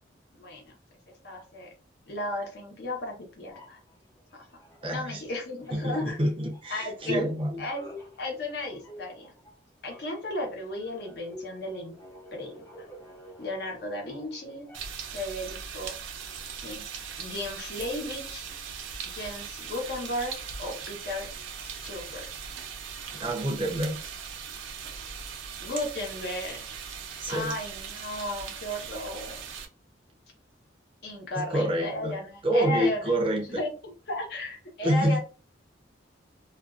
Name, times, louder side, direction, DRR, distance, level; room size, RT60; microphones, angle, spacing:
voice 1, 0.3-0.8 1.2-1.7 2.1-3.8 4.3-4.5 4.9-6.2 6.7-7.3 7.6-7.8 8.2-9.3 9.8-12.0 12.3-12.9 13.4-14.7 15.1-15.9 16.6-18.4 19.1-21.3 21.6-22.3 23.7-24.0 25.6-26.7 27.3-29.4 31.0-33.1 33.5-33.7 34.1-35.2, left 1 dB, 55° left, 1 dB, 0.9 m, -35 dB
sound 1, 3.5-5.3 5.6-15.1, left 1 dB, 15° left, 0.6 m, -49 dB
voice 2, 4.8-5.2 5.7-7.6 23.1-24.0 27.2-27.5 31.3-32.1 32.4-33.6 34.8-35.2, equal, 25° right, 1 dB, 0.5 m, -27 dB
sound 2, 14.7-29.7, right 6 dB, 80° right, 0.5 m, -39 dB
2.4 x 2.3 x 2.4 m, 0.35 s
head